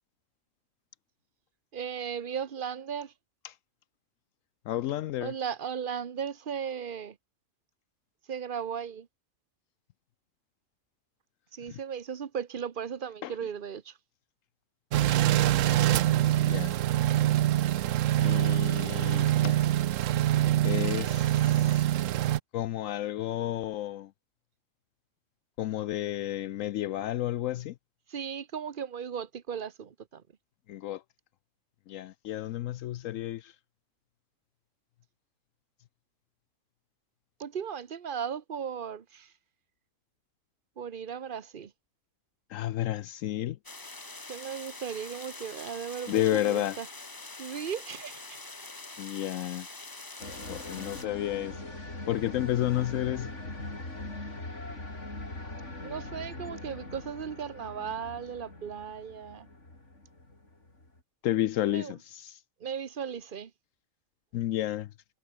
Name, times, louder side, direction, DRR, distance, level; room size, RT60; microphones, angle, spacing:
voice 1, 1.7-3.1 5.2-7.2 8.3-9.1 11.5-14.0 28.1-30.2 37.4-39.3 40.8-41.7 44.3-46.9 47.4-48.4 55.8-59.5 61.7-62.0 62.6-63.5, right 7 dB, 45° right, 1.1 m, -36 dB
voice 2, 4.7-5.3 11.7-11.8 13.2-13.3 16.4-16.7 18.2-19.6 20.6-21.9 22.5-24.1 25.6-27.7 30.7-31.0 31.9-33.5 42.5-43.6 46.1-46.8 49.0-49.7 50.5-51.6 52.1-53.3 61.2-62.4 64.3-64.9, left 13 dB, 75° left, 0.9 m, -31 dB
sound 1, 14.9-22.4, right 13 dB, 75° right, 1.0 m, -25 dB
sound 2, 43.6-51.0, left 2 dB, 15° left, 1.0 m, -44 dB
sound 3, 50.2-61.0, left 2 dB, 60° left, 5.8 m, -41 dB
omnidirectional pair, 1.4 m